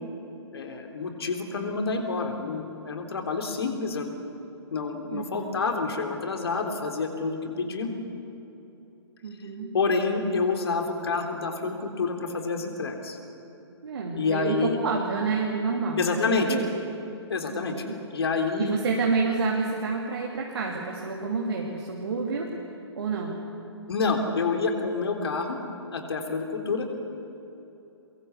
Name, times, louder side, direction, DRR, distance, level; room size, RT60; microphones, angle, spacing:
voice 1, 0.5-4.1 4.7-7.9 9.7-13.2 14.2-14.8 16.0-16.6 17.3-17.9 18.1-18.8 23.9-25.6 25.9-26.9, left 4 dB, 60° left, 4 dB, 3.7 m, -28 dB
voice 2, 5.1-5.5 9.2-9.7 13.8-16.7 17.5-17.9 18.6-22.5 22.9-23.4, right 4 dB, 60° right, -2 dB, 3.3 m, -28 dB
24.0 x 22.5 x 8.3 m, 2.9 s
figure-of-eight pair, 130°, 15 cm